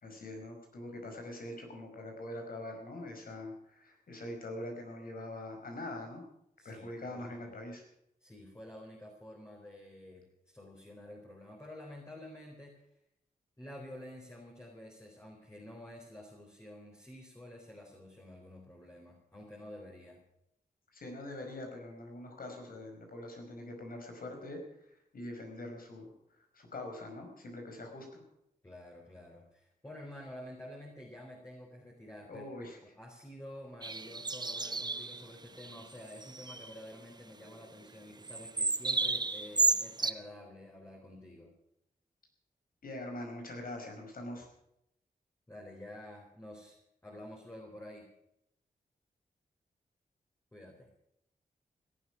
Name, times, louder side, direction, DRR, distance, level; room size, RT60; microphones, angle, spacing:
voice 1, 0.0-6.2 6.7-7.8 20.9-24.6 24.9-28.2 32.3-32.8 42.8-44.5, left 1 dB, 70° left, 3 dB, 5.2 m, -43 dB
voice 2, 6.6-7.5 8.2-12.8 13.6-20.2 28.6-32.5 32.8-41.5 45.5-46.8 47.0-48.1 50.5-50.9, left 1 dB, 15° left, -1 dB, 4.1 m, -49 dB
sound 1, 33.8-35.2 35.6-35.8 36.1-36.7 38.2-40.1, right 3 dB, 25° right, 0.9 m, -32 dB
17.0 x 12.0 x 6.1 m, 0.80 s
cardioid pair, 75°, 15 cm